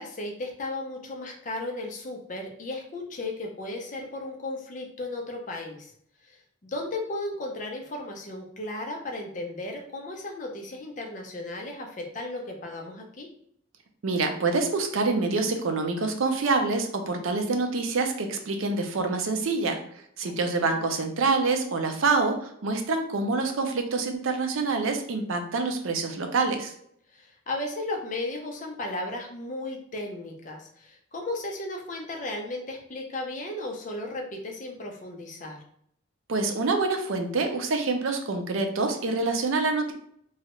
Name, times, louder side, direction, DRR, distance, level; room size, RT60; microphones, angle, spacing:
voice 1, 0.0-5.9 6.3-13.3 20.2-20.9 27.1-35.6, left 2 dB, 40° left, 1 dB, 0.5 m, -35 dB
voice 2, 14.0-19.8 20.2-26.7 36.3-39.9, right 3 dB, 80° right, 5 dB, 0.5 m, -26 dB
3.0 x 2.3 x 2.9 m, 0.67 s
head